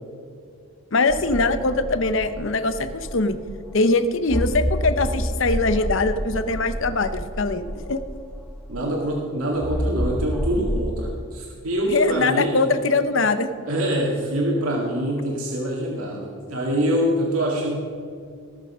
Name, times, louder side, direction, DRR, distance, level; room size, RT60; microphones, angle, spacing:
voice 1, 0.9-3.4 3.7-8.0 11.9-13.5, left 3 dB, 60° left, 11 dB, 0.8 m, -22 dB
sound 1, 1.1-3.7 4.3-9.0 9.6-10.8, equal, ahead, 0.8 m, -29 dB
voice 2, 8.7-12.7 13.6-17.8, right 1 dB, 85° right, -2 dB, 2.0 m, -25 dB
19.0 x 6.7 x 5.5 m, 2.3 s
head